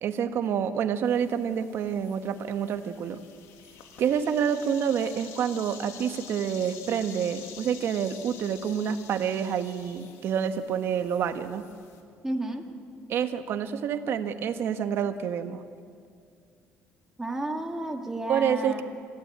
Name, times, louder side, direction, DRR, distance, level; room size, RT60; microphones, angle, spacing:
voice 1, 0.0-3.2 4.0-11.6 13.1-15.6 18.3-18.8, right 8 dB, 60° right, 9 dB, 1.4 m, -28 dB
sound 1, 1.0-12.0, left 7 dB, 85° left, 2.3 m, -48 dB
voice 2, 12.2-12.7 17.2-18.8, right 1 dB, 10° right, 2 dB, 2.2 m, -32 dB
26.5 x 15.5 x 8.8 m, 2.3 s
cardioid pair, 125°, 5 cm